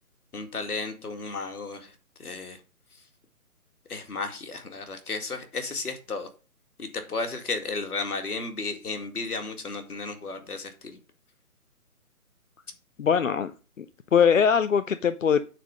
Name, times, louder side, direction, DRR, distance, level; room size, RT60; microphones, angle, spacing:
voice 1, 0.3-1.9 2.2-2.6 3.9-6.3 6.8-11.0, left 3 dB, 75° left, 5 dB, 2.2 m, -33 dB
voice 2, 13.0-13.5 13.8-13.9 14.1-15.4, left 7 dB, 60° left, 11 dB, 0.6 m, -21 dB
9.1 x 4.4 x 5.1 m, 0.35 s
hypercardioid pair, 160°, 45 cm